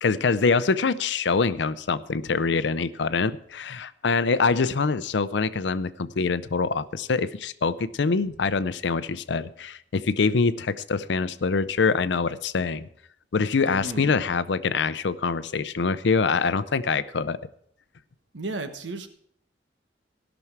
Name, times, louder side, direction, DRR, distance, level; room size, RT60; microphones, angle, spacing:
voice 1, 0.0-12.9 13.3-17.4, left 4 dB, 75° left, 15 dB, 0.5 m, -24 dB
voice 2, 13.7-14.0 18.3-19.1, right 2 dB, 90° right, 8 dB, 1.2 m, -33 dB
16.5 x 6.1 x 5.9 m, 0.69 s
head